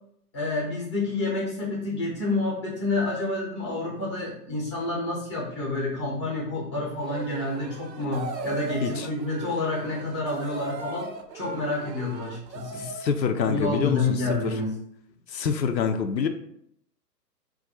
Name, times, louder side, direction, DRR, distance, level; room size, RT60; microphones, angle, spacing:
voice 1, 0.3-11.1 11.3-12.9 13.4-14.7, left 2 dB, 20° left, -4 dB, 0.5 m, -29 dB
sound 1, 7.0-13.2, right 4 dB, 85° right, 0.6 m, -37 dB
voice 2, 12.7-14.2 14.4-14.5 15.3-16.3, left 6 dB, 90° left, 7 dB, 0.6 m, -26 dB
2.5 x 2.2 x 4.0 m, 0.70 s
hypercardioid pair, 145°, 50 cm